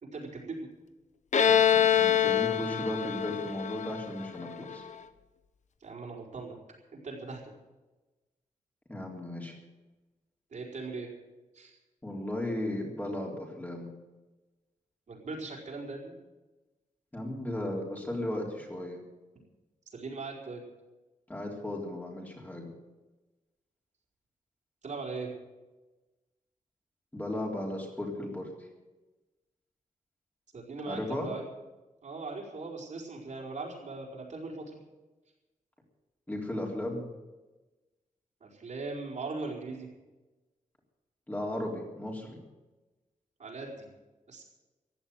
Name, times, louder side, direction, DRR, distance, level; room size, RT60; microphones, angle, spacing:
voice 1, 0.1-0.7 5.8-6.5 6.9-7.5 10.5-11.1 11.5-11.8 15.1-16.1 19.9-20.6 24.8-25.3 30.5-31.5 32.0-34.7 38.4-39.9 43.4-43.9 44.3-44.4, right 3 dB, 60° right, -2 dB, 4.9 m, -39 dB
Bowed string instrument, 1.3-4.9, left 9 dB, 60° left, 0.9 m, -25 dB
voice 2, 1.4-4.8 8.9-9.5 12.0-13.9 17.1-19.0 21.3-22.7 27.1-28.5 30.9-31.3 36.3-37.1 41.3-42.3, left 1 dB, 10° left, -1 dB, 3.6 m, -35 dB
15.5 x 11.0 x 7.9 m, 1.1 s
wide cardioid pair, 140°, 14 cm